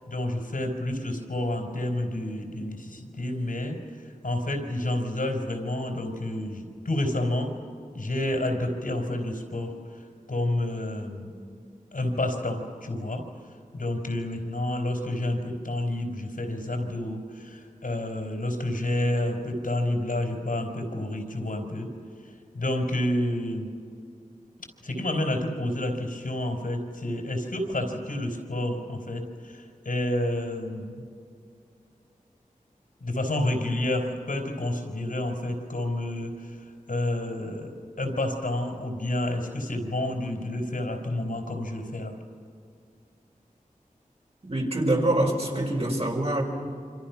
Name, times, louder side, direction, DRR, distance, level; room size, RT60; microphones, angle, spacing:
voice 1, 0.1-3.8 4.2-7.5 7.9-9.8 10.3-11.3 11.9-13.2 13.7-21.9 22.5-23.7 24.8-31.1 33.0-36.6 36.9-37.7 38.0-42.1, left 1 dB, 75° left, 3 dB, 4.1 m, -29 dB
voice 2, 44.5-46.4, right 1 dB, 45° right, -1 dB, 5.6 m, -25 dB
27.0 x 26.0 x 5.9 m, 2.3 s
wide cardioid pair, 55°, 14 cm